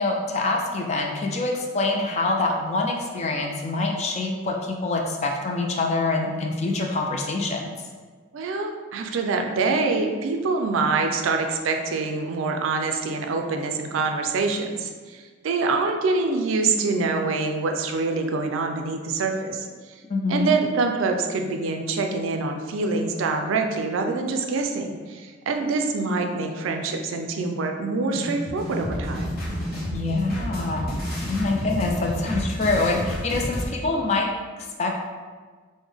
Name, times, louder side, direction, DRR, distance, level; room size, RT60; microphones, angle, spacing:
voice 1, 0.0-7.8 20.1-20.6 29.9-34.9, left 3 dB, 35° left, 0 dB, 0.4 m, -25 dB
voice 2, 8.3-19.9 20.3-29.4, right 3 dB, 90° right, 4 dB, 0.4 m, -25 dB
sound 1, 28.1-33.7, equal, 50° left, 0.9 m, -30 dB
3.4 x 2.1 x 3.4 m, 1.5 s
head